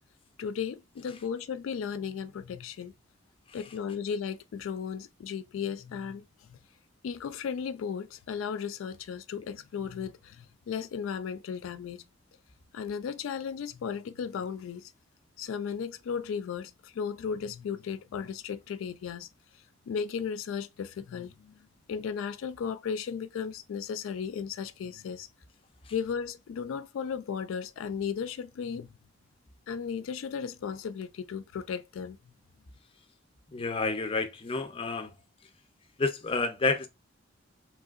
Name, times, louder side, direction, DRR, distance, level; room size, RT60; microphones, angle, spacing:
voice 1, 0.4-2.9 3.5-6.6 7.0-12.0 12.7-14.9 15.4-19.3 19.9-21.6 21.9-25.3 25.9-28.9 29.7-32.2, left 6 dB, 85° left, 0.3 m, -35 dB
voice 2, 33.5-35.1 36.0-36.9, left 3 dB, 30° left, 0.5 m, -29 dB
3.3 x 2.7 x 2.3 m
head